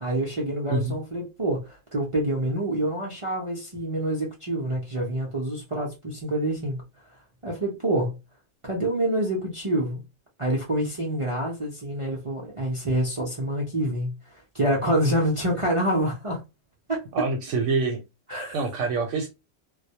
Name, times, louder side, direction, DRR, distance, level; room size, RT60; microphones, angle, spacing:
voice 1, 0.0-6.8 7.4-8.2 8.6-10.0 10.4-14.1 14.5-16.4 16.9-17.2 18.3-18.5, right 1 dB, 50° right, 0.4 m, -27 dB
voice 2, 17.1-18.0 18.3-19.3, right 3 dB, 70° right, 0.9 m, -26 dB
2.3 x 2.1 x 2.7 m
omnidirectional pair, 1.4 m